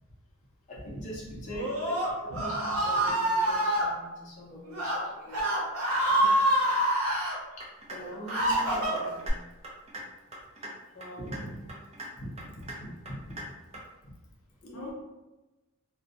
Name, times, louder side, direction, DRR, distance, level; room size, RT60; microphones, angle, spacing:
voice 1, 0.7-2.0 2.4-5.6 6.0-9.3 10.6-10.7 10.9-11.8 12.6-12.7 14.6-14.9, equal, 35° left, -6 dB, 0.5 m, -44 dB
Screaming, 1.5-3.9 4.6-5.0 5.3-7.4 7.9-9.3, right 1 dB, 80° right, 0.9 m, -26 dB
sound 1, 7.6-8.0 8.3-8.6 9.0-9.3 9.6-10.0 10.3-10.7 11.0-11.4 11.7-12.1 12.4-12.7 13.1-13.4 13.7-13.8, right 2 dB, 30° right, 0.5 m, -41 dB
voice 2, 11.2-11.5 12.2-13.5 14.7-14.9, equal, 75° left, -2 dB, 0.7 m, -41 dB
2.6 x 2.1 x 2.4 m, 1.1 s
head